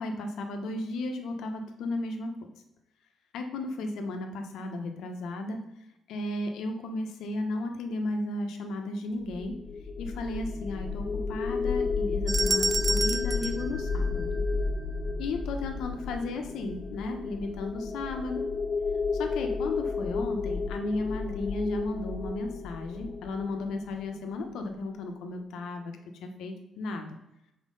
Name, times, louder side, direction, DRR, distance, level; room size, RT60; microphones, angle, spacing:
voice 1, 0.0-2.3 3.3-5.6 6.1-9.5 10.0-14.4 15.2-18.4 19.1-25.9 26.2-27.2, left 2 dB, 85° left, 4 dB, 1.0 m, -34 dB
sound 1, 9.2-24.3, left 4 dB, 40° left, 0.8 m, -32 dB
sound 2, 12.3-14.7, right 3 dB, 30° right, 0.4 m, -30 dB
6.5 x 4.5 x 5.4 m, 0.86 s
cardioid pair, 90°, 0 cm